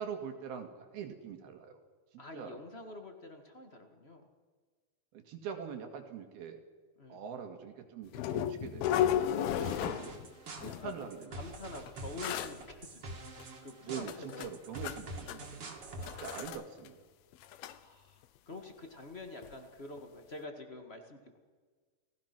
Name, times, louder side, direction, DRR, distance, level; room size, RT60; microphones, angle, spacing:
voice 1, 0.0-1.8 2.1-2.6 5.1-6.6 7.1-10.3 10.5-11.4 13.9-14.1 14.4-17.0, right 7 dB, 75° right, 5 dB, 4.1 m, -44 dB
voice 2, 2.2-4.2 7.0-7.2 10.7-11.0 11.3-13.0 13.3-14.5 17.7-21.4, left 2 dB, 35° left, 4 dB, 1.0 m, -47 dB
sound 1, 8.1-10.3 10.6-11.1 11.9-12.0 12.2-12.5 13.4-13.5 14.0-15.0 15.3-15.5 16.0-16.6 16.9-17.0 17.3-17.8 19.4-19.5 20.0-20.1, left 10 dB, 80° left, 2.7 m, -34 dB
sound 2, 9.6-16.5, right 2 dB, 40° right, 2.9 m, -46 dB
30.0 x 19.5 x 6.1 m, 1.5 s
omnidirectional pair, 4.4 m